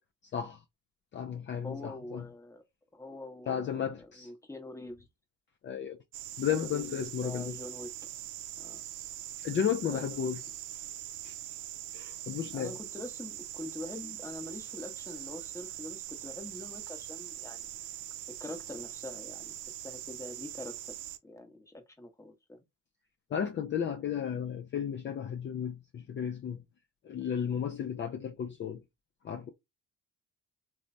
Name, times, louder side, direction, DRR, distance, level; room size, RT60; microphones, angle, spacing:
voice 1, 1.1-2.2 3.5-4.3 5.6-6.0 6.4-7.6 9.4-10.4 11.2-11.4 11.9-12.7 23.3-26.6 27.0-28.8 29.2-29.5, left 8 dB, 40° left, 0.4 m, -33 dB
voice 2, 1.6-2.6 2.9-5.1 6.4-7.9 8.6-8.8 9.9-10.3 12.5-17.8 18.4-19.5 19.8-20.9 21.2-22.6, left 2 dB, 10° left, 0.8 m, -44 dB
sound 1, 6.1-21.2, right 13 dB, 80° right, 0.5 m, -42 dB
3.1 x 2.1 x 2.5 m
cardioid pair, 90°, 30 cm